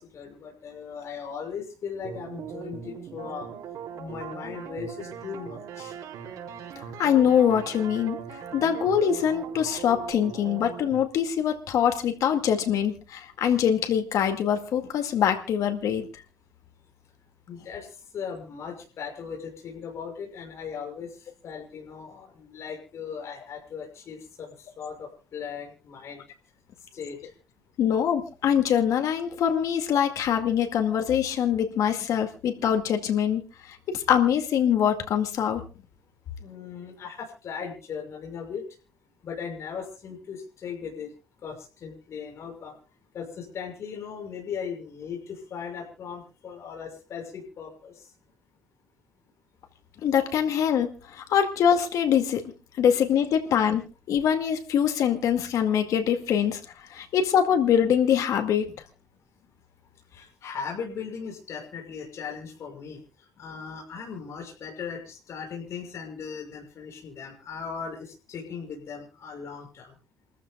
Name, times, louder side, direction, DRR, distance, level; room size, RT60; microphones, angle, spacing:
voice 1, 0.0-3.5 4.0-6.0 17.5-26.2 26.9-27.3 36.4-38.7 39.2-41.1 41.4-42.7 43.1-48.1 60.1-70.0, left 6 dB, 55° left, 0 dB, 6.4 m, -38 dB
sound 1, 2.0-11.0, right 8 dB, 90° right, 4.1 m, -40 dB
voice 2, 6.8-16.2 27.8-35.6 50.0-52.4 52.8-56.6 56.9-58.7, left 8 dB, 70° left, 5 dB, 2.1 m, -24 dB
28.5 x 14.0 x 2.3 m, 0.34 s
cardioid pair, 135°, 6 cm